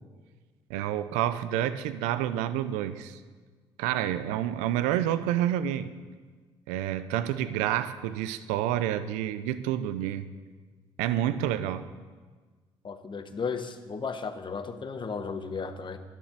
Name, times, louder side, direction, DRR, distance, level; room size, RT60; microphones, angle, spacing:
voice 1, 0.7-3.2 3.8-5.9 6.7-10.3 11.0-11.9, right 11 dB, 85° right, 13 dB, 0.6 m, -29 dB
voice 2, 12.8-16.0, left 5 dB, 40° left, 8 dB, 1.3 m, -34 dB
11.5 x 9.2 x 6.8 m, 1.4 s
hypercardioid pair, 55°, 12 cm